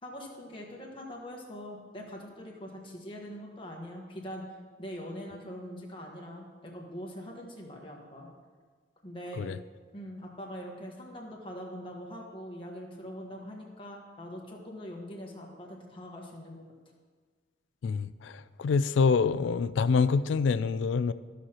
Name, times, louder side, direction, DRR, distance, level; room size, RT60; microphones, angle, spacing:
voice 1, 0.0-4.4 4.8-8.3 9.0-9.5 9.9-16.6, equal, 25° left, -1 dB, 1.3 m, -43 dB
voice 2, 17.8-21.1, left 5 dB, 75° left, 15 dB, 0.3 m, -26 dB
14.5 x 6.3 x 2.9 m, 1.5 s
head